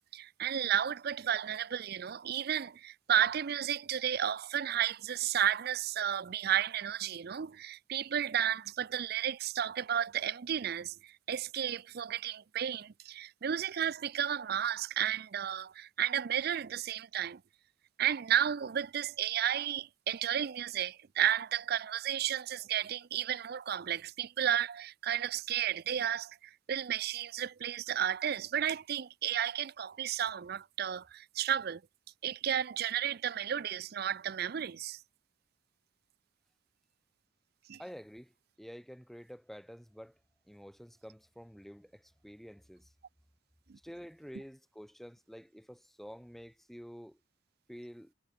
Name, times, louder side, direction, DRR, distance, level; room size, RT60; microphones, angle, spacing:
voice 1, 0.1-17.4 18.0-31.8 32.2-35.0 37.7-37.8 43.7-43.8, right 9 dB, 50° right, 0.4 m, -33 dB
voice 2, 37.8-38.3 38.6-40.2 40.5-42.9 43.8-47.2 47.7-48.1, equal, ahead, 2.0 m, -49 dB
head